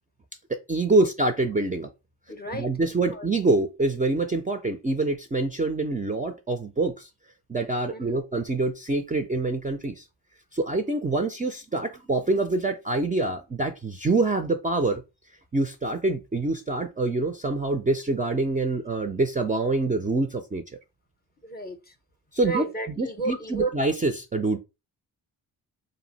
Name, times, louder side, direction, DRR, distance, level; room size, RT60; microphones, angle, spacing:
voice 1, 0.5-1.9 2.5-7.1 7.5-10.0 10.5-15.0 15.5-20.6 22.3-22.7 23.0-24.6, right 2 dB, 20° right, 0.4 m, -25 dB
voice 2, 2.3-3.3 7.9-8.2 21.4-21.9 22.4-23.7, right 3 dB, 20° left, 0.6 m, -33 dB
2.5 x 2.0 x 3.9 m
supercardioid pair, 45°, 44 cm